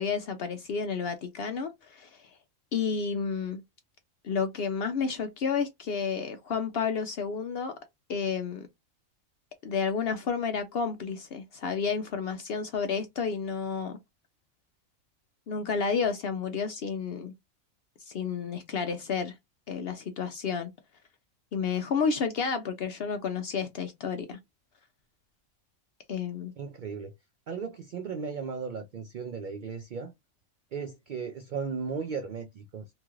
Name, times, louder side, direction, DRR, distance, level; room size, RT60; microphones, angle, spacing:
voice 1, 0.0-2.2 2.7-3.6 4.2-7.8 8.1-8.7 9.6-14.0 15.5-17.3 18.0-19.3 19.7-20.7 21.5-24.4 26.1-26.5, left 6 dB, 65° left, 0.6 m, -31 dB
voice 2, 26.6-27.1 27.5-30.1 30.7-32.8, right 5 dB, 85° right, 0.4 m, -36 dB
2.9 x 2.4 x 2.9 m
omnidirectional pair, 1.4 m